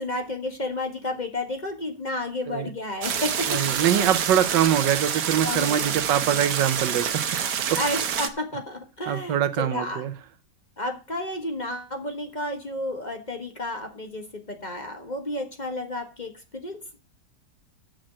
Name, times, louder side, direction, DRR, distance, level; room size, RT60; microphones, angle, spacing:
voice 1, 0.0-4.1 5.4-6.0 7.8-10.0 10.8-17.0, left 1 dB, 25° left, 4 dB, 1.4 m, -32 dB
sound 1, 3.0-8.3, right 8 dB, 70° right, 1.6 m, -27 dB
voice 2, 3.5-7.2 7.7-7.8 9.1-10.1, right 10 dB, 90° right, 12 dB, 1.6 m, -23 dB
7.8 x 6.5 x 7.5 m, 0.33 s
omnidirectional pair, 1.9 m